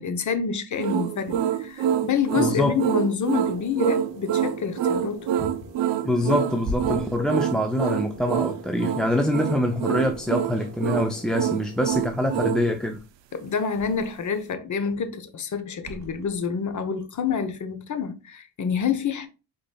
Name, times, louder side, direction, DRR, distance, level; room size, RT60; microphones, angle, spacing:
voice 1, 0.0-5.5 13.3-19.3, left 6 dB, 45° left, 0.8 m, -28 dB
sound 1, 0.8-12.7, right 10 dB, 90° right, 0.6 m, -26 dB
voice 2, 2.4-2.8 6.0-13.0, left 1 dB, ahead, 0.4 m, -25 dB
Wind instrument woodwind instrument, 3.4-12.0, right 1 dB, 20° left, 2.5 m, -45 dB
Thump thud, 6.2-9.5 9.9-10.7 11.0-12.5 12.8-14.4 14.7-15.3 15.8-16.8 17.1-17.3, equal, 40° right, 1.6 m, -40 dB
5.0 x 3.9 x 2.2 m
cardioid pair, 90°, 42 cm